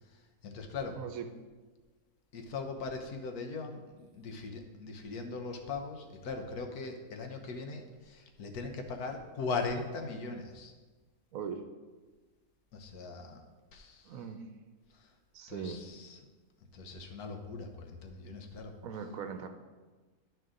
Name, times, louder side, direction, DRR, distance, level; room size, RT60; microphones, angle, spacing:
voice 1, 0.4-1.0 2.3-10.7 12.7-13.4 13.7-14.1 15.5-16.2 16.7-18.7, left 4 dB, 80° left, 4 dB, 1.4 m, -39 dB
voice 2, 0.9-1.3 11.3-11.6 14.0-14.4 15.3-15.8 18.8-19.5, right 7 dB, 70° right, 7 dB, 1.1 m, -39 dB
11.0 x 5.3 x 3.8 m, 1.3 s
omnidirectional pair, 1.6 m